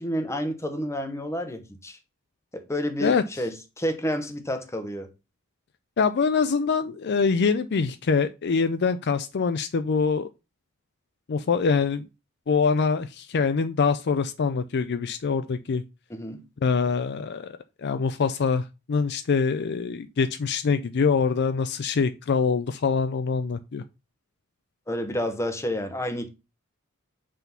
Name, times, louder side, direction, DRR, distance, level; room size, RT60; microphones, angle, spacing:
voice 1, 0.0-2.0 2.5-5.1 16.1-16.4 24.9-26.3, equal, 15° left, 1.0 m, -30 dB
voice 2, 6.0-10.3 11.3-12.1 12.5-15.8 16.6-17.5 17.8-23.8, left 5 dB, 55° left, 0.5 m, -24 dB
5.8 x 3.8 x 5.7 m
head